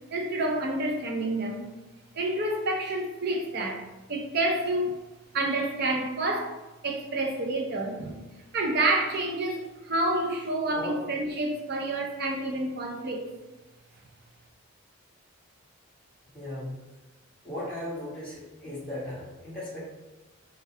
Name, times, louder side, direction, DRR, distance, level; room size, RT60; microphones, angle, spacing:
voice 1, 0.1-1.6 2.1-5.0 5.3-6.5 6.8-8.2 8.5-13.2, right 2 dB, 45° right, 1 dB, 0.6 m, -28 dB
voice 2, 10.7-11.0 16.3-16.8 17.4-19.8, left 1 dB, 5° left, -11 dB, 1.5 m, -37 dB
3.5 x 2.3 x 4.3 m, 1.1 s
head